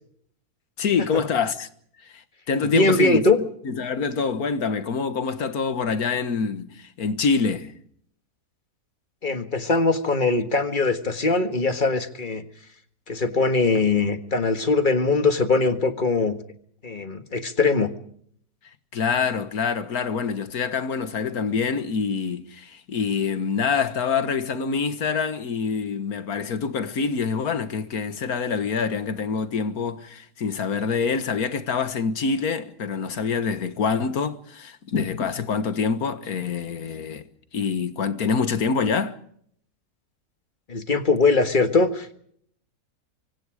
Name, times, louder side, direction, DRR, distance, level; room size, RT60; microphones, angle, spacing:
voice 1, 0.8-1.7 2.0-3.2 3.7-7.7 18.9-37.2 37.5-39.2, left 5 dB, 70° left, 1.9 m, -26 dB
voice 2, 2.6-3.4 9.2-12.4 13.1-16.3 16.8-17.9 40.7-42.1, left 3 dB, 30° left, 1.7 m, -21 dB
25.5 x 25.0 x 5.0 m
omnidirectional pair, 1.7 m